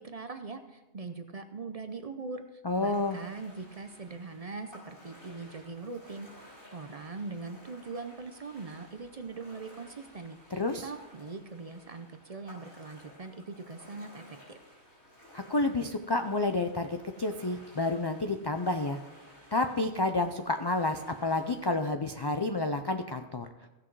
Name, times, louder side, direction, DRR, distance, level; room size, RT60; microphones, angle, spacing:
voice 1, 0.0-6.3 6.7-14.6, right 4 dB, 40° right, 8 dB, 0.6 m, -41 dB
voice 2, 2.6-3.2 10.5-10.9 15.3-19.0 19.5-23.5, left 2 dB, 40° left, 6 dB, 0.3 m, -30 dB
Ocean, 2.7-21.7, equal, 55° left, 4.5 m, -55 dB
15.5 x 6.2 x 4.6 m, 1.1 s
omnidirectional pair, 1.1 m